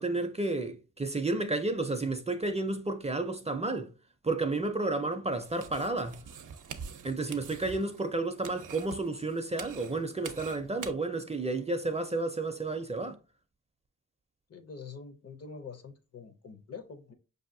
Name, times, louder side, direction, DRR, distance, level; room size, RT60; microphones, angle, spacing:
voice 1, 0.0-3.9 4.2-6.3 7.0-13.2, right 2 dB, 20° right, 0.4 m, -31 dB
sound 1, 5.4-10.9, right 7 dB, 85° right, 0.5 m, -46 dB
voice 2, 14.5-17.1, left 5 dB, 55° left, 0.6 m, -45 dB
5.5 x 2.7 x 2.6 m
wide cardioid pair, 85°, 30 cm